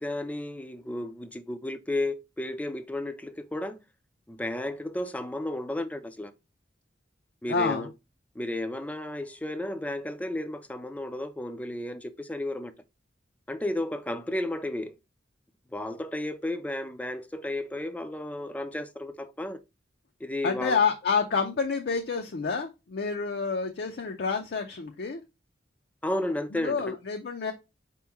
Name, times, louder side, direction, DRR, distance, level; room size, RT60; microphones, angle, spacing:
voice 1, 0.0-3.8 4.3-6.3 7.4-7.9 8.4-12.7 13.5-15.0 15.7-19.6 20.2-20.8 26.0-26.9, left 1 dB, 10° left, 0.4 m, -33 dB
voice 2, 7.5-7.9 20.4-25.2 26.5-27.5, left 5 dB, 60° left, 0.5 m, -28 dB
4.6 x 3.0 x 3.4 m
head